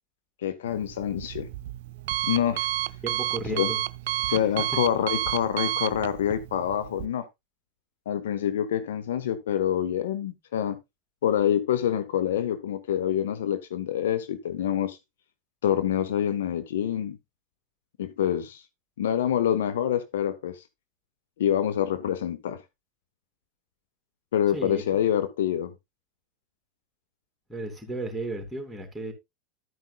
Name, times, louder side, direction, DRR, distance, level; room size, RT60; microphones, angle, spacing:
voice 1, 0.4-1.5 2.2-2.6 3.5-3.7 4.3-7.2 8.1-10.8 11.2-15.0 15.6-17.2 18.0-18.6 19.0-20.6 21.4-22.6 24.3-25.7, left 10 dB, 65° left, 0.8 m, -26 dB
Alarm, 0.7-7.1, right 15 dB, 60° right, 0.4 m, -31 dB
voice 2, 3.0-3.8 4.3-4.4 24.5-24.8 27.5-29.1, right 2 dB, 5° right, 3.2 m, -34 dB
11.5 x 9.1 x 2.4 m
figure-of-eight pair, 85°, 0 cm